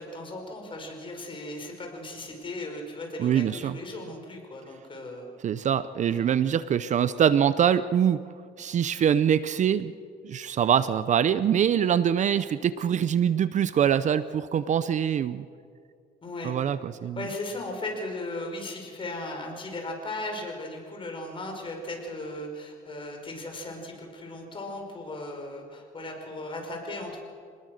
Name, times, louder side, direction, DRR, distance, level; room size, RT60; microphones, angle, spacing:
voice 1, 0.0-5.3 6.0-6.3 16.2-16.7 17.2-27.2, left 2 dB, 30° left, 2 dB, 5.3 m, -37 dB
voice 2, 3.2-3.8 5.4-8.2 8.6-9.9 10.2-15.4 16.4-17.3, right 9 dB, 45° right, 14 dB, 0.7 m, -24 dB
26.0 x 20.0 x 6.6 m, 2.2 s
cardioid pair, 110°, 17 cm